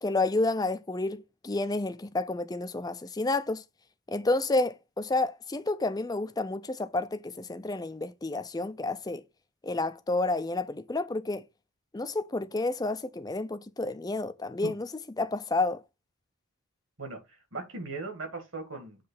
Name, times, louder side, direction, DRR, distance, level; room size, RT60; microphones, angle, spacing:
voice 1, 0.0-3.6 4.1-9.2 9.6-11.4 11.9-14.9 15.2-15.8, left 2 dB, 15° left, 0.4 m, -30 dB
voice 2, 17.0-19.1, right 3 dB, 60° right, 2.1 m, -39 dB
7.5 x 3.2 x 5.6 m
head